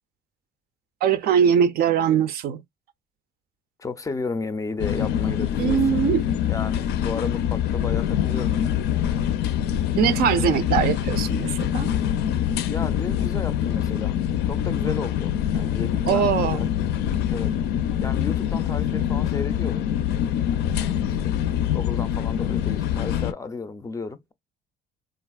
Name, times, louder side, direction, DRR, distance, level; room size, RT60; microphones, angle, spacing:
voice 1, 1.0-2.6 5.6-6.2 9.9-11.9 16.1-16.7, right 8 dB, 65° right, 0.5 m, -21 dB
voice 2, 3.8-6.0 6.5-8.9 12.7-14.2 14.5-16.7 17.3-17.6 18.0-19.9 20.8-21.4 21.7-24.3, left 4 dB, 20° left, 0.4 m, -33 dB
sound 1, 4.8-23.3, left 10 dB, 80° left, 0.4 m, -24 dB
3.3 x 2.4 x 2.3 m
cardioid pair, 110°, 17 cm